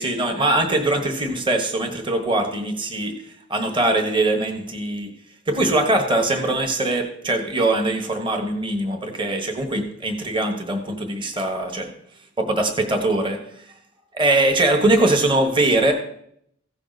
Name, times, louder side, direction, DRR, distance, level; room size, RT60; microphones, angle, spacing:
voice 1, 0.0-3.1 3.5-5.1 5.5-11.9 12.4-13.7 14.1-15.9, right 2 dB, 25° right, 4 dB, 1.3 m, -22 dB
15.5 x 5.9 x 4.0 m, 0.69 s
head